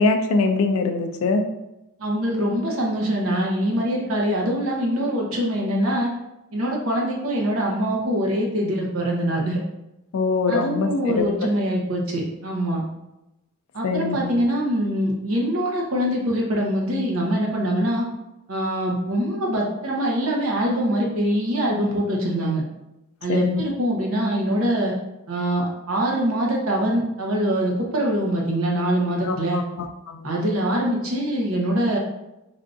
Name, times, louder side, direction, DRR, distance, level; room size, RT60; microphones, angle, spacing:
voice 1, 0.0-1.4 10.1-11.3 13.8-14.4 23.3-23.6 29.2-30.3, left 3 dB, 75° left, 6 dB, 0.4 m, -23 dB
voice 2, 2.0-6.1 6.5-9.6 10.5-12.8 13.7-18.1 18.5-22.6 23.2-24.9 25.3-29.6 30.2-32.0, equal, 75° right, -1 dB, 0.8 m, -23 dB
3.5 x 2.5 x 2.4 m, 0.93 s
head